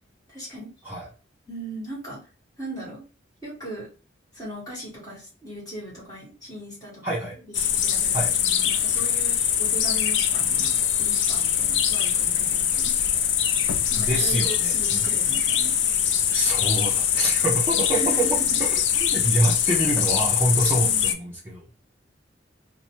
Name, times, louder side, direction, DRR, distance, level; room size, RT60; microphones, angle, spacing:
voice 1, 0.3-0.7 1.5-2.2 2.6-3.0 3.4-3.9 4.4-13.0 13.9-15.7 17.9-18.6 20.7-21.3, right 1 dB, 20° left, -5 dB, 1.7 m, -38 dB
voice 2, 7.0-7.4 8.1-8.3 14.0-15.1 16.3-18.3 18.6-21.7, right 1 dB, 10° right, -7 dB, 0.8 m, -26 dB
sound 1, 7.5-21.1, left 9 dB, 75° left, 0.4 m, -23 dB
2.9 x 2.2 x 2.9 m, 0.34 s
head